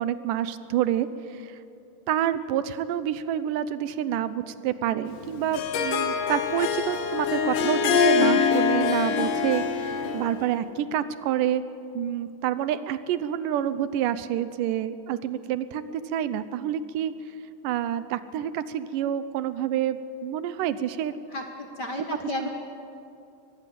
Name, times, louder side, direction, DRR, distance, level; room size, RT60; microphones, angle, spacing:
voice 1, 0.0-1.6 2.1-11.6 11.9-17.1 17.6-21.1 22.0-22.1 22.4-22.5, right 10 dB, 85° right, 14 dB, 2.4 m, -28 dB
Harp, 5.1-10.5, left 6 dB, 90° left, 2.9 m, -24 dB
voice 2, 21.3-22.5, left 2 dB, 50° left, 3 dB, 1.3 m, -33 dB
22.5 x 20.0 x 7.6 m, 2.6 s
omnidirectional pair, 3.7 m